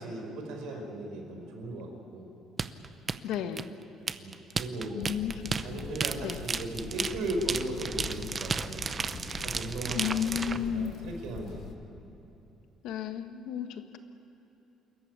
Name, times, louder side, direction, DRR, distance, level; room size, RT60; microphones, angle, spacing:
voice 1, 0.0-2.3 4.2-5.2 5.6-8.8 9.4-11.7, right 1 dB, 90° right, 2 dB, 5.0 m, -37 dB
sound 1, 2.6-10.6, right 5 dB, 25° right, 0.6 m, -33 dB
voice 2, 3.2-3.7 4.9-5.4 5.7-5.8 6.2-6.4 9.9-10.9 12.8-14.0, left 9 dB, 75° left, 7 dB, 1.5 m, -33 dB
sound 2, 5.0-11.7, left 5 dB, 45° left, 1.7 m, -44 dB
27.5 x 14.5 x 9.6 m, 3.0 s
cardioid pair, 170°, 0 cm